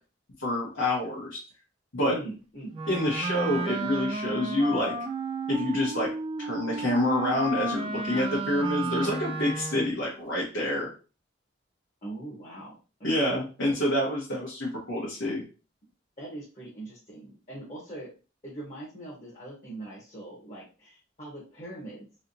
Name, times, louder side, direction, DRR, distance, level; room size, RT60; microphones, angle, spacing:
voice 1, 0.4-1.4 1.9-2.1 2.9-4.9 5.5-6.1 6.4-10.9 13.0-15.4, left 1 dB, 75° left, -6 dB, 1.1 m, -27 dB
voice 2, 2.0-2.8 12.0-12.8 13.1-13.4 16.2-18.1 18.4-22.1, right 1 dB, 35° left, -5 dB, 1.0 m, -41 dB
Wind instrument woodwind instrument, 2.7-10.0, right 3 dB, 25° right, 0.4 m, -33 dB
3.2 x 2.9 x 2.6 m, 0.34 s
head